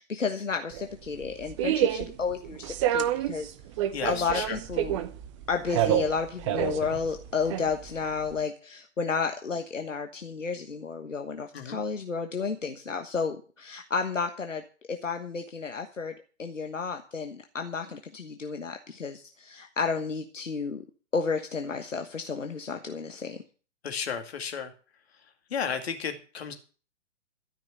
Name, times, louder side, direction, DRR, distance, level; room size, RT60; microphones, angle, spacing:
voice 1, 0.0-3.5 4.0-5.0 5.5-20.8 21.1-23.4, left 5 dB, 80° left, 6 dB, 1.3 m, -32 dB
sound 1, 0.7-8.4, right 11 dB, 25° right, 0.7 m, -29 dB
voice 2, 3.9-4.6 11.5-11.8 23.8-24.7 25.5-26.5, left 7 dB, 55° left, 7 dB, 2.5 m, -33 dB
13.0 x 6.1 x 8.7 m, 0.39 s
figure-of-eight pair, 120°, 37 cm